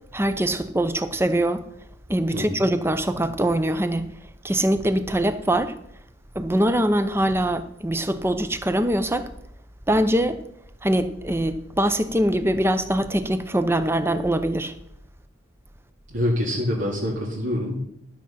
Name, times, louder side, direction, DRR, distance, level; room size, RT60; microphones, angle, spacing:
voice 1, 0.1-1.6 2.1-4.1 4.4-5.7 6.3-9.3 9.9-10.4 10.8-14.7, right 1 dB, 10° right, 0.6 m, -23 dB
voice 2, 16.1-17.8, left 1 dB, 70° right, 2.3 m, -25 dB
12.5 x 7.5 x 5.7 m
head